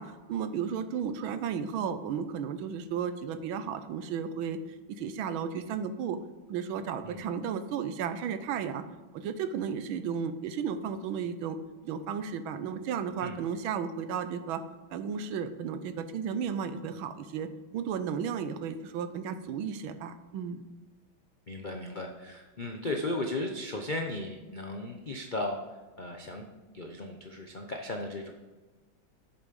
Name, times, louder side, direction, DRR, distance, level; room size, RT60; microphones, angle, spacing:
voice 1, 0.0-4.6 4.9-6.2 6.5-8.8 9.1-11.6 11.8-14.6 14.9-17.5 17.7-20.6, right 7 dB, 85° right, 10 dB, 1.6 m, -34 dB
voice 2, 21.5-26.5 26.7-28.3, left 2 dB, 70° left, 2 dB, 0.4 m, -36 dB
8.2 x 7.1 x 5.2 m, 1.3 s
omnidirectional pair, 2.2 m